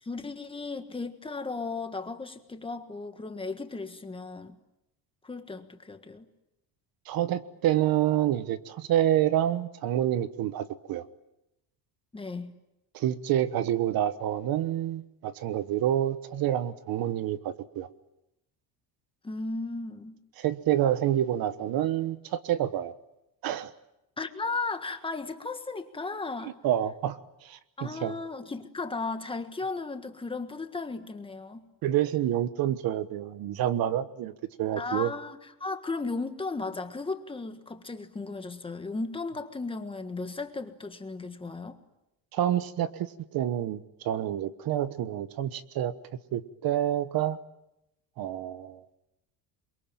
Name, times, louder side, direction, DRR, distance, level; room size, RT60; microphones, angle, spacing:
voice 1, 0.0-4.6 5.2-6.3 12.1-12.5 19.2-20.2 24.2-26.6 27.8-31.7 34.8-41.8, left 3 dB, 10° left, 7 dB, 1.6 m, -35 dB
voice 2, 7.1-11.0 12.9-17.9 20.4-22.9 23.4-23.7 26.4-28.2 31.8-35.1 42.3-45.9 46.3-47.4 48.2-48.8, right 11 dB, 50° right, 14 dB, 1.3 m, -28 dB
28.5 x 23.0 x 9.0 m, 0.88 s
cardioid pair, 165°, 44 cm